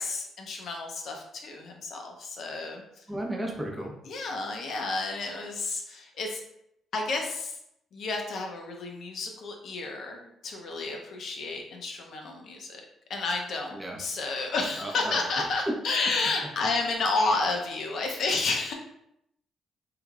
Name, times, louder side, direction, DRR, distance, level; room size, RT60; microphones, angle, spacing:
voice 1, 0.0-2.8 4.1-6.4 6.9-7.6 7.9-12.8 13.1-18.7, left 3 dB, 65° left, 2 dB, 0.7 m, -31 dB
voice 2, 3.1-3.9 13.7-14.0 14.8-15.2 15.7-15.8, right 1 dB, 10° right, 0 dB, 0.8 m, -33 dB
3.2 x 3.2 x 2.4 m, 0.78 s
cardioid pair, 90°, 0 cm